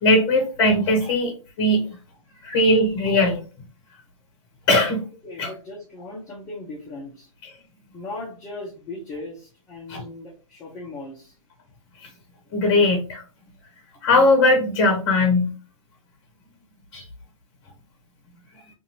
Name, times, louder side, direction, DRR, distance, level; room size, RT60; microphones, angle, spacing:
voice 1, 0.0-1.3 1.6-1.9 2.4-3.4 4.7-5.0 5.4-5.5 9.9-10.0 12.5-13.2 14.0-15.5 16.9-17.0, left 2 dB, 40° left, 2 dB, 1.0 m, -19 dB
voice 2, 2.3-2.6 5.2-7.3 7.9-11.3, left 2 dB, 20° left, -4 dB, 0.8 m, -38 dB
2.7 x 2.6 x 2.8 m, 0.35 s
hypercardioid pair, 125°, 18 cm